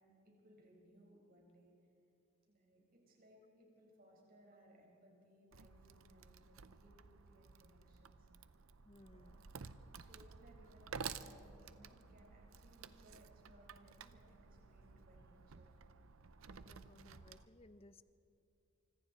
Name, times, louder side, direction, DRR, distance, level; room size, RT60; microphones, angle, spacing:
voice 1, 0.0-1.7 2.5-8.3 9.1-9.3 9.9-15.7, equal, 45° right, -1 dB, 5.2 m, -65 dB
Wood, 5.5-17.5, right 6 dB, 85° right, 0.7 m, -53 dB
voice 2, 8.8-9.5 16.6-18.0, left 2 dB, 30° left, 12 dB, 0.7 m, -62 dB
25.5 x 25.0 x 4.3 m, 2.7 s
head